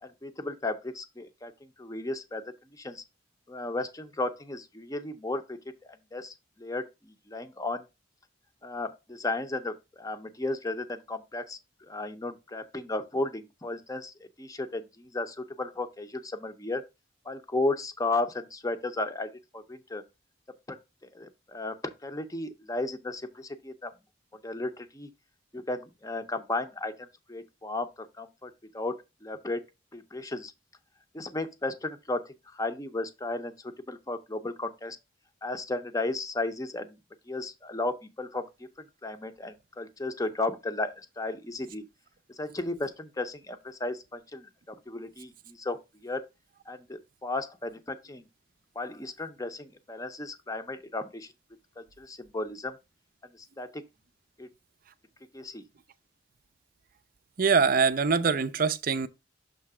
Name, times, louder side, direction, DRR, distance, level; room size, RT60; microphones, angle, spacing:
voice 1, 0.0-2.4 2.7-3.0 3.5-5.6 6.1-7.9 8.6-16.8 17.2-20.0 20.7-20.8 21.1-21.8 22.0-23.9 24.4-25.1 25.5-29.0 29.2-29.6 29.9-30.5 31.1-35.0 35.4-37.0 37.3-41.8 42.4-46.3 46.7-48.3 48.8-51.3 51.8-52.8 53.3-53.8 54.4-54.5 55.3-55.6, left 2 dB, 20° left, 0.6 m, -34 dB
voice 2, 57.4-59.1, right 5 dB, 50° right, 0.5 m, -23 dB
6.6 x 3.1 x 4.8 m
head